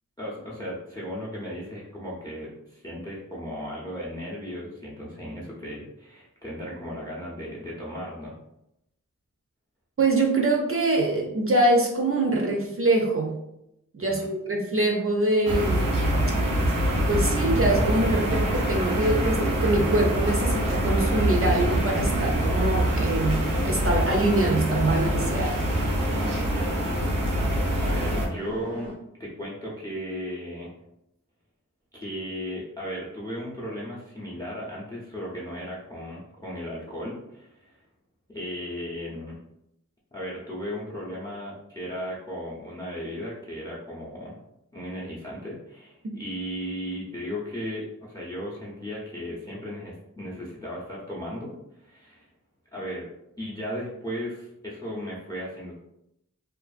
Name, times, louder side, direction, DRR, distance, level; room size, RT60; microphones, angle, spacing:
voice 1, 0.2-8.4 14.0-14.3 26.1-28.9 29.2-30.7 31.9-37.8 38.3-39.4 40.1-44.4 44.7-52.3 52.7-53.1 53.4-55.7, equal, 10° left, -4 dB, 0.6 m, -36 dB
voice 2, 10.0-13.4 13.9-15.9 17.1-25.6, right 2 dB, 45° right, 0 dB, 0.5 m, -24 dB
sound 1, 15.5-28.3, right 1 dB, 90° right, 0.6 m, -25 dB
sound 2, 20.2-28.9, left 1 dB, 85° left, 0.8 m, -39 dB
2.5 x 2.3 x 2.4 m, 0.83 s
wide cardioid pair, 40°, 32 cm